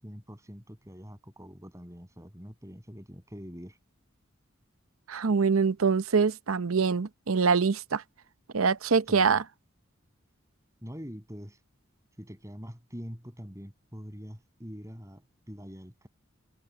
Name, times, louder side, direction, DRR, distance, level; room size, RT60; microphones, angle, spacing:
voice 1, 0.0-3.8 9.1-9.4 10.8-11.6 12.2-16.1, equal, 15° right, 6.8 m, -44 dB
voice 2, 5.1-8.0 8.5-9.4, right 5 dB, 90° right, 0.7 m, -24 dB
head